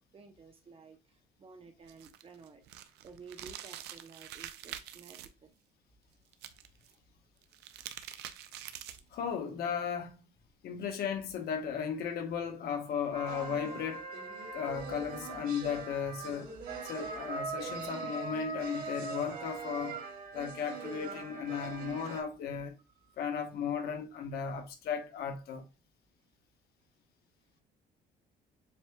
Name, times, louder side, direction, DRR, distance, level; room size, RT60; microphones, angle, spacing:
voice 1, 0.1-5.5 9.0-9.1 22.9-23.4, right 4 dB, 35° right, 1.0 m, -54 dB
sound 1, 1.8-5.3 6.3-6.9 7.4-9.1, right 11 dB, 80° right, 0.6 m, -46 dB
voice 2, 9.1-10.1 10.6-14.1 14.5-16.5 16.8-20.0 20.3-22.7 23.2-25.7, left 7 dB, 70° left, 1.2 m, -35 dB
sound 2, 13.1-22.2, right 4 dB, 60° right, 2.3 m, -41 dB
7.2 x 2.8 x 2.3 m
cardioid pair, 110°, 17 cm